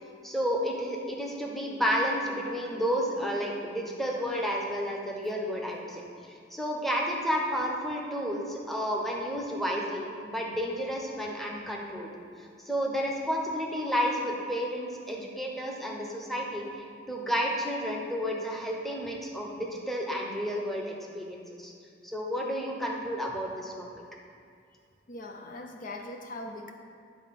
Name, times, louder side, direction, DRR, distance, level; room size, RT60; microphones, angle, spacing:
voice 1, 0.2-6.0 6.5-12.1 12.6-21.7 22.0-23.9, equal, ahead, -2 dB, 0.9 m, -31 dB
voice 2, 25.1-26.7, left 2 dB, 45° left, 3 dB, 0.5 m, -40 dB
9.5 x 4.4 x 5.8 m, 2.3 s
head